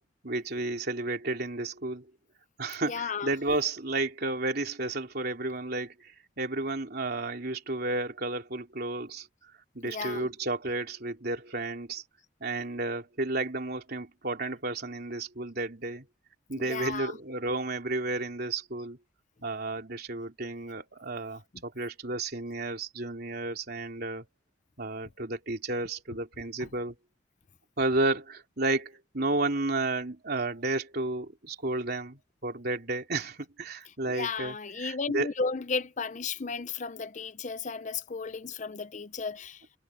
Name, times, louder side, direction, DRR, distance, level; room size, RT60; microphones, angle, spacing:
voice 1, 0.2-2.1 2.6-9.3 9.7-12.0 12.4-16.1 16.5-19.0 19.4-24.2 24.8-26.9 27.8-35.3, right 2 dB, 55° right, 3.4 m, -32 dB
voice 2, 2.9-3.3 9.8-10.3 16.6-17.2 26.6-26.7 34.1-39.8, left 4 dB, 40° left, 0.6 m, -34 dB
head